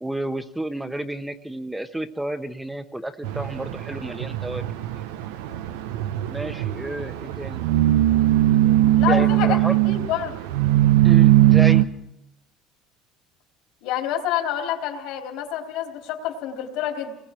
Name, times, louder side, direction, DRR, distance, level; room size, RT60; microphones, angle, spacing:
voice 1, 0.0-4.6 6.3-7.6 9.1-9.7 11.0-11.8, right 1 dB, 5° right, 8 dB, 1.1 m, -31 dB
sound 1, 3.2-11.8, right 14 dB, 90° right, 0.9 m, -19 dB
voice 2, 8.9-9.6 9.9-10.4 13.8-17.2, left 11 dB, 75° left, 3 dB, 3.5 m, -27 dB
28.5 x 20.5 x 4.5 m, 0.88 s
supercardioid pair, 95°, 0 cm